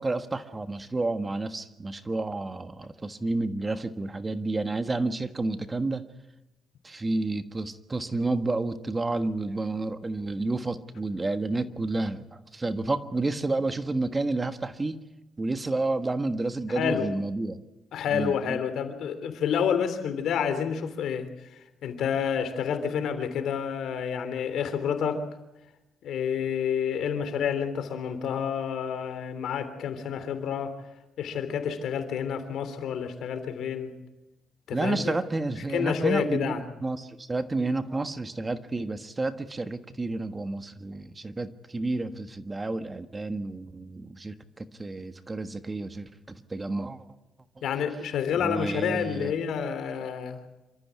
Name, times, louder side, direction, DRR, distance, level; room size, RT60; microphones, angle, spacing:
voice 1, 0.0-6.0 6.8-15.0 15.4-17.6 18.1-18.6 34.7-47.1 48.4-49.3, right 2 dB, 25° right, 10 dB, 1.4 m, -30 dB
voice 2, 16.7-17.1 17.9-25.2 26.0-30.7 31.2-33.9 34.7-35.2 35.7-36.6 47.6-50.4, left 7 dB, 75° left, 9 dB, 3.2 m, -29 dB
27.5 x 14.0 x 8.4 m, 0.98 s
cardioid pair, 90°, 0 cm